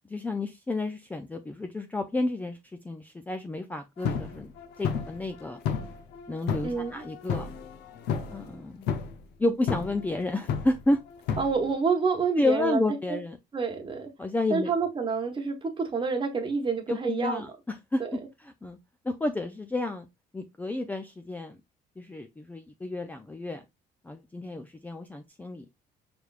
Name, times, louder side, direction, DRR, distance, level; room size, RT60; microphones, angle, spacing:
voice 1, 0.1-2.6 2.8-4.5 4.8-5.6 6.3-7.5 8.3-8.9 9.4-11.0 12.4-13.4 14.2-14.7 16.9-18.0 18.6-18.8 19.0-20.1 20.3-21.6 22.0-23.6 24.0-25.7, left 2 dB, 10° left, 0.4 m, -30 dB
sound 1, 4.0-8.6 8.8-9.2 9.7-11.7, left 6 dB, 80° left, 0.7 m, -32 dB
voice 2, 6.6-7.1 11.4-12.8 13.1-13.2 13.5-14.1 14.5-17.4 18.0-18.2, right 5 dB, 30° right, 1.1 m, -28 dB
4.7 x 3.3 x 2.4 m
cardioid pair, 110°, 17 cm